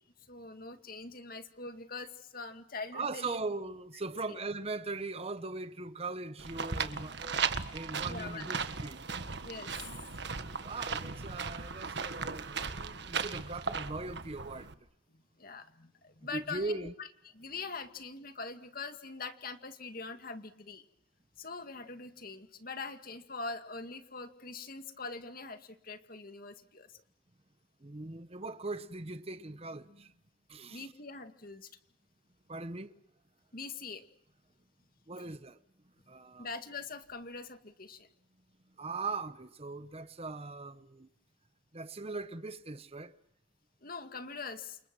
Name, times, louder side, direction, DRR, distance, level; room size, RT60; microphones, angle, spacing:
voice 1, 0.3-3.4 4.3-4.4 8.1-8.5 9.4-9.7 15.1-17.1 17.3-20.8 21.4-26.9 30.7-31.7 33.5-34.0 36.4-38.1 43.8-44.8, left 4 dB, 50° left, 2.1 m, -43 dB
voice 2, 2.9-9.0 10.6-14.7 16.3-16.9 27.8-30.1 30.5-30.9 32.5-32.9 35.1-35.6 36.1-36.5 38.8-41.1 41.7-43.2, right 3 dB, 30° right, 1.0 m, -40 dB
sound 1, 6.4-14.7, right 5 dB, 60° right, 1.6 m, -37 dB
29.5 x 28.0 x 6.2 m
head